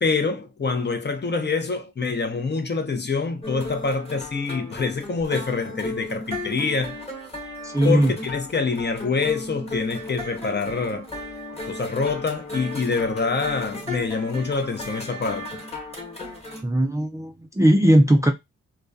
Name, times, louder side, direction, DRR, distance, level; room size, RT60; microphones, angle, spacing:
voice 1, 0.0-7.0 7.8-11.1 11.7-15.6, left 4 dB, 35° left, 0.6 m, -26 dB
sound 1, 3.4-16.6, left 1 dB, 20° left, 1.2 m, -35 dB
voice 2, 7.6-8.1 16.6-18.3, right 1 dB, 10° right, 0.4 m, -18 dB
2.2 x 2.2 x 2.4 m
cardioid pair, 55°, 31 cm